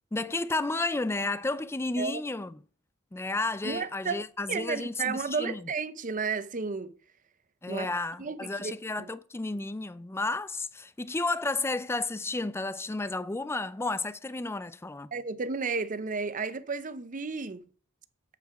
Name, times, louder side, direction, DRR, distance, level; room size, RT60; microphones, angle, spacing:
voice 1, 0.1-2.5 3.1-5.6 7.6-15.1, left 2 dB, 10° left, 0.4 m, -32 dB
voice 2, 3.6-6.9 7.7-7.9 8.2-8.7 9.0-9.1 15.1-17.6, right 4 dB, 35° right, 0.6 m, -33 dB
7.9 x 7.4 x 4.9 m
head